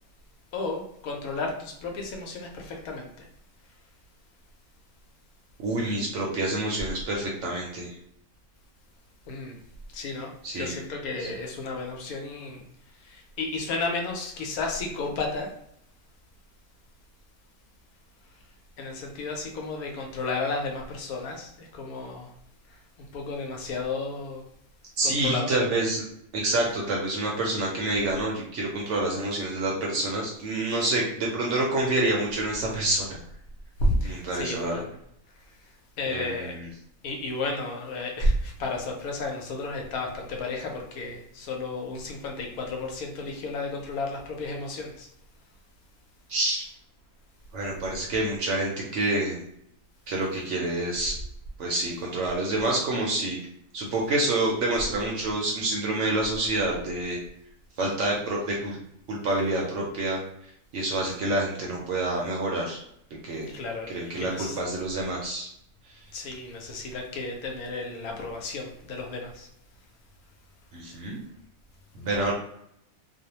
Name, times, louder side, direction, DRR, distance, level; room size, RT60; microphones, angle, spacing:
voice 1, 0.5-3.3 9.3-9.6 9.9-12.7 13.0-15.5 18.8-22.3 22.7-24.4 25.0-25.6 33.8-34.9 35.4-35.6 36.0-36.6 37.0-45.1 63.5-64.6 66.1-69.5 72.3-72.4, left 2 dB, 75° left, 1 dB, 1.0 m, -32 dB
voice 2, 5.6-7.9 10.4-10.7 11.2-11.3 25.0-26.0 26.3-33.2 34.0-34.8 36.1-36.7 46.3-46.6 47.5-49.4 50.1-51.1 51.6-53.4 53.7-57.2 57.8-58.8 59.1-60.2 60.7-62.8 63.2-63.5 63.9-65.5 70.7-71.2 71.9-72.3, right 2 dB, 65° right, -2 dB, 0.8 m, -27 dB
2.6 x 2.0 x 2.8 m, 0.72 s
omnidirectional pair, 1.6 m